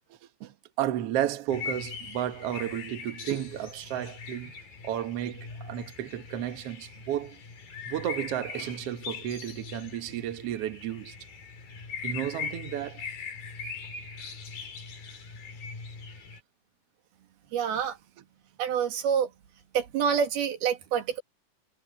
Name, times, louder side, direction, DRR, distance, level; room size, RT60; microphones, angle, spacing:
voice 1, 0.4-4.5 4.8-7.4 7.9-11.1 12.0-13.0, right 11 dB, 60° right, 1.6 m, -32 dB
sound 1, 1.5-16.4, left 5 dB, 70° left, 6.2 m, -41 dB
voice 2, 17.5-18.0 18.6-19.3 19.7-21.2, right 7 dB, 90° right, 4.1 m, -27 dB
omnidirectional pair, 4.3 m